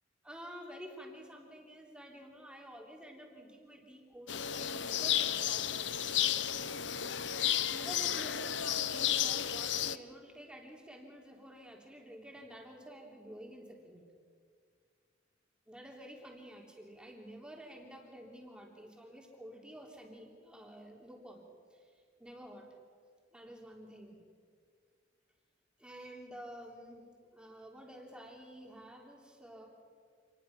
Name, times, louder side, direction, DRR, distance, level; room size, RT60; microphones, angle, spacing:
voice 1, 0.2-5.9 7.7-14.0 15.7-21.4 21.7-22.7 23.3-24.2 25.8-29.7, equal, 5° right, 0 dB, 3.2 m, -50 dB
sound 1, 4.3-10.0, left 10 dB, 70° left, 0.7 m, -32 dB
27.0 x 20.0 x 5.9 m, 2.1 s
head